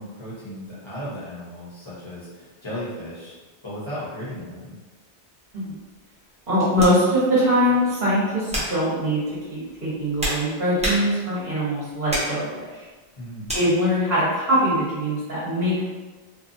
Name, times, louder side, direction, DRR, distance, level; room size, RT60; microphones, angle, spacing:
voice 1, 0.0-3.3 3.6-4.7 13.2-13.5, equal, 25° left, -10 dB, 1.0 m, -35 dB
sound 1, 5.5-5.7 6.8-7.0 7.7-7.9 8.5-8.8 9.7-11.4 12.1-12.4 13.5-13.7, equal, 10° right, 0.6 m, -29 dB
voice 2, 6.5-9.2 9.5-12.8 13.5-15.9, equal, 45° right, -9 dB, 1.1 m, -22 dB
2.8 x 2.3 x 2.6 m, 1.3 s
omnidirectional pair, 1.2 m